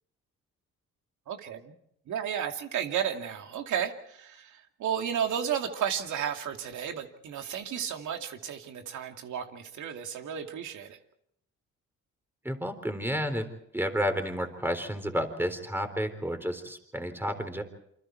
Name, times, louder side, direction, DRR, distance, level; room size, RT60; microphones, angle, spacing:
voice 1, 1.3-1.7 2.1-11.0, right 8 dB, 75° right, 5 dB, 2.5 m, -33 dB
voice 2, 12.4-13.5 13.7-17.6, equal, 5° right, 8 dB, 3.8 m, -31 dB
28.5 x 26.0 x 4.6 m, 0.73 s
cardioid pair, 90°, 30 cm